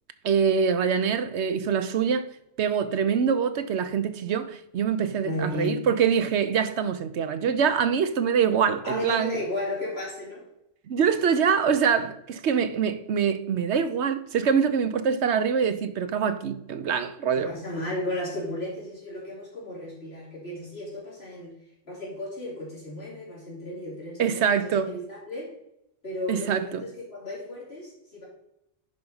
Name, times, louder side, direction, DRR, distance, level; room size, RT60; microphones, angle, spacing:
voice 1, 0.2-2.3 2.6-9.4 10.9-17.5 24.2-24.9 26.3-26.8, right 7 dB, 65° right, 1.0 m, -24 dB
voice 2, 5.2-5.8 8.8-10.4 17.5-21.5 21.8-25.5 26.0-28.3, left 1 dB, 55° left, 3.3 m, -34 dB
10.5 x 4.6 x 5.5 m
omnidirectional pair, 1.3 m